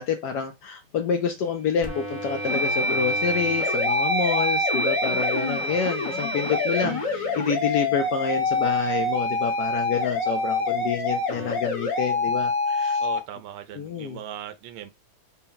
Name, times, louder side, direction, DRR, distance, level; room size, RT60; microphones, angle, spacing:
voice 1, 0.0-13.0 13.8-14.2, left 6 dB, 75° left, 0.9 m, -28 dB
sound 1, 1.1-1.5 2.0-8.2, right 2 dB, 65° right, 1.2 m, -28 dB
sound 2, 1.8-13.2, left 3 dB, 30° left, 0.5 m, -27 dB
voice 2, 13.0-14.9, right 10 dB, 85° right, 1.4 m, -39 dB
4.2 x 2.1 x 3.8 m
omnidirectional pair, 2.2 m